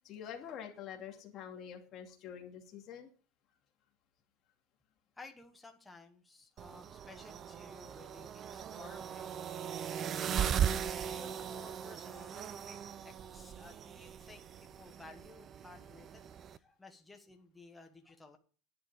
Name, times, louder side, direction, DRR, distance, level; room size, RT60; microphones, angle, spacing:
voice 1, 0.0-3.1, left 8 dB, 30° left, 1 dB, 2.5 m, -46 dB
voice 2, 5.2-9.4 10.2-12.8 13.0-18.4, left 3 dB, 5° left, 3 dB, 1.2 m, -56 dB
sound 1, 6.6-16.6, right 9 dB, 25° right, 0.5 m, -38 dB
11.0 x 9.6 x 5.0 m, 0.40 s
supercardioid pair, 175°, 0 cm